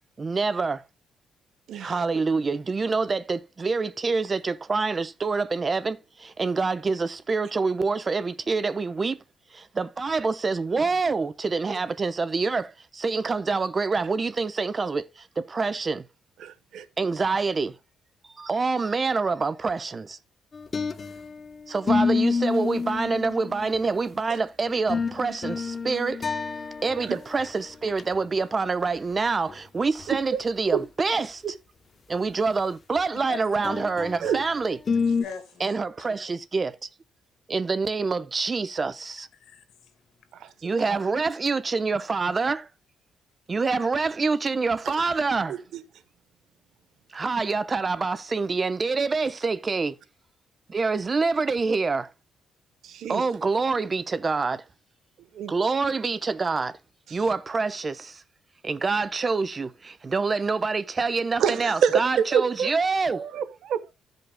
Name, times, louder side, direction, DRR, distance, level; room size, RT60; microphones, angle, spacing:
voice 1, 0.2-0.8 1.8-9.2 9.5-16.0 17.0-17.7 18.2-20.2 21.7-26.2 26.8-31.5 32.1-34.8 35.6-36.8 37.5-39.3 40.6-42.7 43.5-45.6 47.1-50.0 50.7-52.1 53.1-54.6 55.5-56.8 57.1-58.2 58.6-63.3, right 4 dB, 30° right, 0.8 m, -26 dB
voice 2, 16.4-16.8 27.0-27.2 30.3-30.4 30.7-30.8 34.2-34.4 40.4-40.5 40.9-41.0 45.5-45.8 52.8-53.2 55.3-55.5 61.4-62.7 63.1-63.9, right 7 dB, 75° right, 1.0 m, -26 dB
sound 1, 20.5-21.4 21.9-24.0 24.6-27.1 27.4-27.5 27.9-28.0 29.5-29.6 30.0-30.1 33.6-34.4 34.9-35.2, left 5 dB, 35° left, 0.7 m, -28 dB
voice 3, 33.3-33.7 35.2-35.7 36.0-36.1 39.3-39.9, left 7 dB, 75° left, 1.7 m, -42 dB
15.5 x 5.3 x 2.2 m
cardioid pair, 90°, 0 cm